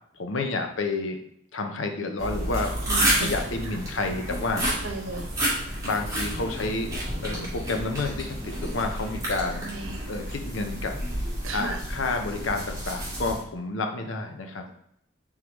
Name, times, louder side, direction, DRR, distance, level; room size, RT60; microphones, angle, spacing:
voice 1, 0.2-1.2 1.5-2.8 3.0-4.6 5.8-7.0 7.2-9.6 10.1-10.9 11.5-14.6, left 3 dB, 80° left, 5 dB, 0.7 m, -30 dB
sound 1, 2.2-13.4, right 1 dB, 15° right, 1.6 m, -30 dB
voice 2, 2.9-3.3 4.8-5.3 9.6-10.0 11.4-11.8, right 3 dB, 85° right, 3 dB, 0.9 m, -35 dB
4.7 x 3.7 x 3.0 m, 0.71 s
head